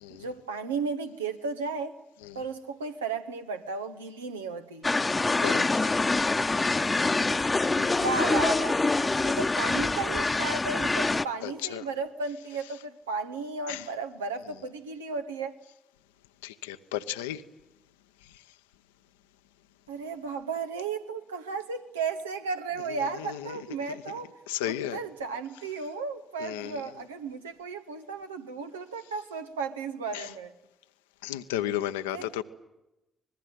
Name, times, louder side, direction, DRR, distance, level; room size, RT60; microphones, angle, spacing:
voice 1, 0.1-2.0 2.3-4.8 7.9-15.5 19.9-24.3 24.6-30.5 32.1-32.3, right 4 dB, 85° right, 1.1 m, -34 dB
sound 1, 4.8-11.2, left 3 dB, 25° left, 0.9 m, -25 dB
voice 2, 5.3-6.0 7.7-8.0 11.4-11.8 13.7-13.9 16.4-17.4 18.3-18.4 22.9-24.0 24.5-25.0 26.4-26.9 30.1-30.3 31.2-32.4, left 12 dB, 80° left, 0.8 m, -34 dB
25.5 x 21.0 x 9.2 m
figure-of-eight pair, 40°, 0 cm